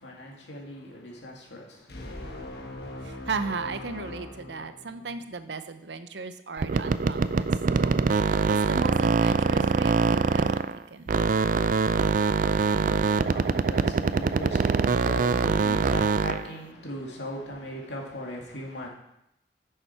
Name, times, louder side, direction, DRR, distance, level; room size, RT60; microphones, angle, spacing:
voice 1, 0.0-1.8 2.9-3.0 12.7-18.9, left 1 dB, 80° left, -1 dB, 2.2 m, -39 dB
sound 1, 1.9-5.4, left 1 dB, 60° left, 1.4 m, -40 dB
voice 2, 3.0-10.5 10.9-11.1, right 4 dB, 80° right, 10 dB, 0.7 m, -36 dB
sound 2, 6.6-10.8 11.1-16.5, right 4 dB, 50° right, 0.4 m, -23 dB
10.0 x 6.7 x 4.4 m, 0.81 s
head